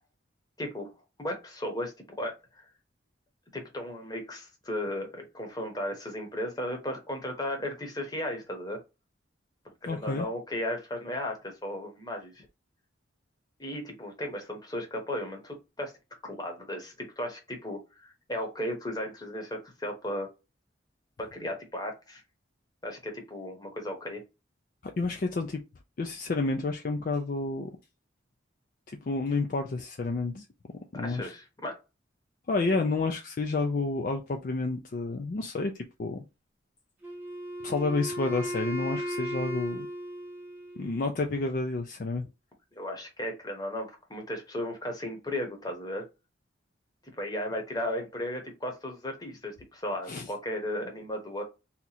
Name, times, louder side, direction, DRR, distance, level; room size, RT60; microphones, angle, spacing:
voice 1, 0.6-0.9 1.2-2.6 3.5-8.8 9.8-12.5 13.6-15.9 16.2-20.3 21.2-22.2 22.8-24.2 30.9-31.8 42.7-46.1 47.0-51.4, left 1 dB, 20° left, 0.9 m, -35 dB
voice 2, 9.9-10.3 24.8-25.6 26.0-27.7 28.9-30.4 30.9-31.3 32.5-35.7 36.0-36.2 37.6-39.9 40.8-42.2 50.1-50.3, left 3 dB, 45° left, 0.4 m, -30 dB
Wind instrument woodwind instrument, 37.0-41.1, equal, 10° right, 0.8 m, -36 dB
2.8 x 2.4 x 4.0 m
head